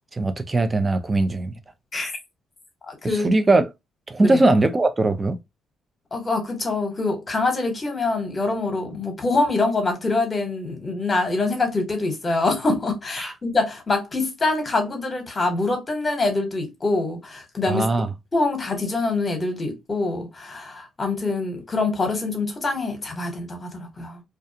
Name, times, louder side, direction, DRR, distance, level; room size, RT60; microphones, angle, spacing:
voice 1, 0.1-1.5 3.2-3.7 4.1-5.4 13.2-13.3 17.7-18.1, right 2 dB, 25° right, 0.4 m, -20 dB
voice 2, 2.9-3.3 4.2-4.4 6.1-17.9 18.3-24.2, left 3 dB, 30° left, 1.0 m, -25 dB
2.4 x 2.3 x 2.7 m
cardioid pair, 90°, 0 cm